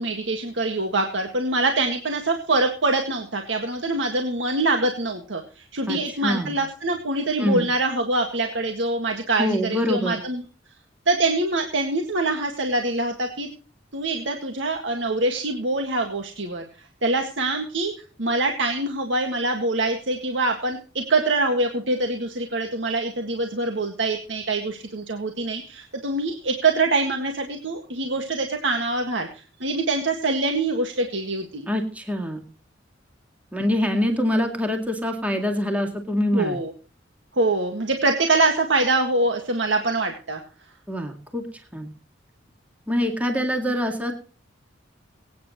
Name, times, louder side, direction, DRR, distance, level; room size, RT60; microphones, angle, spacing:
voice 1, 0.0-10.4 11.1-13.5 13.9-16.6 17.0-17.9 18.2-29.3 29.6-31.7 36.3-36.7 37.4-40.4, right 2 dB, 75° right, 3 dB, 1.8 m, -24 dB
voice 2, 5.9-6.6 7.4-7.7 9.4-10.2 31.7-32.4 33.5-36.6 40.9-41.5 41.7-41.9 42.9-44.1, left 1 dB, 10° right, 4 dB, 2.0 m, -25 dB
23.5 x 9.3 x 3.1 m, 0.39 s
head